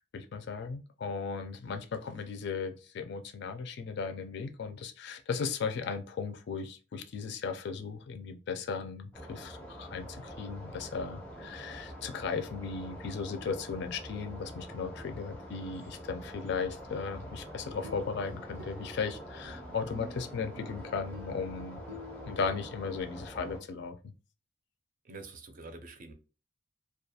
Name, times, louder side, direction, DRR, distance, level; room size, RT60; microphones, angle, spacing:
voice 1, 0.1-21.8 22.3-24.1, left 5 dB, 60° left, 0.4 m, -36 dB
sound 1, 9.1-23.6, equal, 10° left, 0.5 m, -45 dB
sound 2, 17.4-23.0, left 1 dB, 90° right, 0.6 m, -50 dB
voice 2, 25.0-26.1, right 3 dB, 45° right, 0.5 m, -46 dB
2.3 x 2.3 x 2.7 m
head